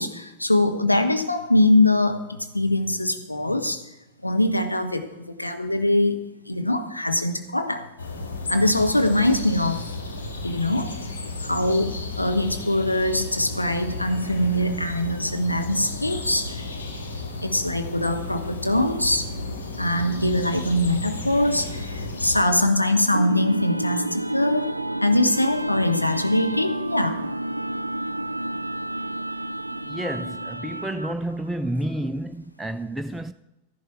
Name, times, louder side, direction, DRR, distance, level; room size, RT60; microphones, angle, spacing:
voice 1, 0.0-3.8 4.2-6.2 6.5-7.9 8.5-9.8 10.4-10.9 11.4-16.6 17.4-19.3 19.8-24.7 25.0-27.2, left 1 dB, 85° left, 1.0 m, -22 dB
sound 1, 8.0-22.4, left 2 dB, 70° left, 1.9 m, -33 dB
sound 2, 23.1-31.3, right 1 dB, 85° right, 0.3 m, -30 dB
voice 2, 29.8-33.3, right 1 dB, 5° right, 0.4 m, -30 dB
14.0 x 11.0 x 4.7 m
figure-of-eight pair, 90°, 0 cm